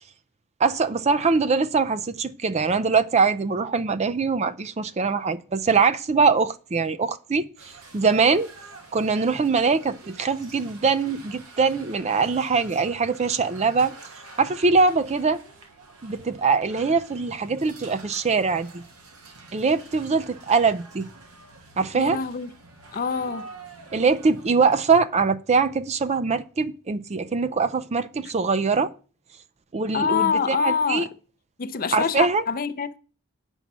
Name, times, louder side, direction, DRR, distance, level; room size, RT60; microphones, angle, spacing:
voice 1, 0.6-7.5 7.9-8.5 8.9-13.9 14.4-15.4 16.0-18.8 19.5-21.1 21.8-22.2 23.9-28.9 29.7-31.1 31.9-32.4, right 4 dB, 30° right, 0.4 m, -22 dB
sound 1, 7.6-25.0, right 3 dB, 90° right, 1.9 m, -47 dB
voice 2, 21.9-22.5 22.9-23.5 29.9-31.1 31.6-33.0, left 6 dB, 40° left, 0.6 m, -25 dB
8.4 x 5.4 x 6.0 m
head